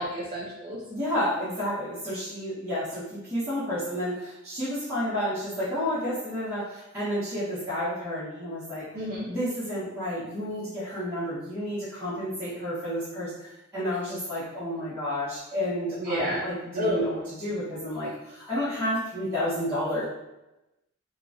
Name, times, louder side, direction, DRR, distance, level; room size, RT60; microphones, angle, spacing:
voice 1, 0.0-0.8 8.9-9.3 16.0-16.4 16.8-17.1, equal, 40° right, -7 dB, 0.4 m, -29 dB
voice 2, 0.9-20.0, equal, 10° right, -15 dB, 1.0 m, -31 dB
2.9 x 2.3 x 2.5 m, 0.95 s
head